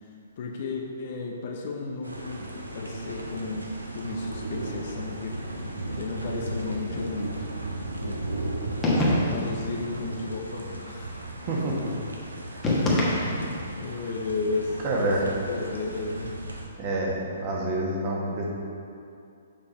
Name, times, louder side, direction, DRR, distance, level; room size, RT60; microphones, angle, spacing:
voice 1, 0.4-5.4 6.0-7.5 8.0-8.2 8.8-11.2 13.7-16.3, left 3 dB, 50° left, 1 dB, 0.8 m, -33 dB
sound 1, 2.0-16.7, right 2 dB, 85° right, 0.9 m, -36 dB
sound 2, 8.8-9.6 12.6-13.7, left 1 dB, 15° left, 1.4 m, -24 dB
voice 2, 11.4-11.9 12.5-12.8 14.8-15.2 16.8-18.5, right 1 dB, 35° right, -3 dB, 1.4 m, -28 dB
6.9 x 5.2 x 4.4 m, 2.5 s
figure-of-eight pair, 125°, 0 cm